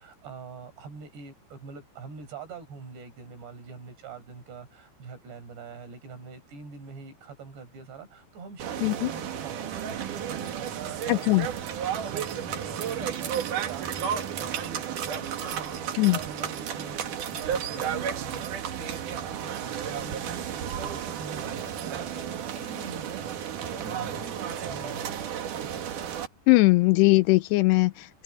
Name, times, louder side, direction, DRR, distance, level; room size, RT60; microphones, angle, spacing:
voice 1, 0.0-11.8 12.1-25.2 25.6-25.9, right 5 dB, 70° right, 7.2 m, -44 dB
sound 1, 8.6-26.3, right 8 dB, 55° right, 2.8 m, -33 dB
voice 2, 11.1-11.5 16.0-16.2 26.5-27.9, left 22 dB, 80° left, 2.6 m, -20 dB
omnidirectional pair, 5.1 m